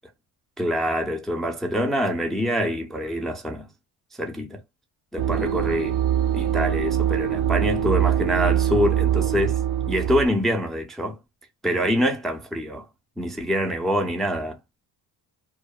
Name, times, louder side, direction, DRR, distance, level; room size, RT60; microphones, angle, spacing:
voice 1, 0.6-3.7 4.2-4.6 5.1-6.0 6.3-9.6 9.9-11.2 11.6-12.9 13.2-14.6, equal, ahead, 0.3 m, -25 dB
sound 1, 5.2-10.3, right 10 dB, 55° right, 0.6 m, -23 dB
2.8 x 2.1 x 2.2 m
cardioid pair, 150°, 41 cm